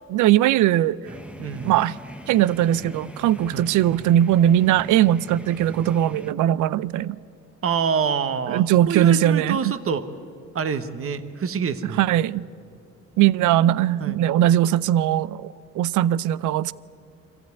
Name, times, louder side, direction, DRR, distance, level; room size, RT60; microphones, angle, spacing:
voice 1, 0.1-1.0 1.6-1.9 2.3-7.2 8.5-9.7 12.0-12.5 13.2-16.7, right 12 dB, 80° right, 0.5 m, -20 dB
sound 1, 1.0-6.3, equal, 5° right, 0.9 m, -40 dB
voice 2, 1.4-1.7 3.5-3.7 7.6-10.1 10.5-12.1 13.6-14.2, right 6 dB, 45° right, 1.1 m, -26 dB
24.0 x 14.5 x 9.4 m
cardioid pair, 90°, 30 cm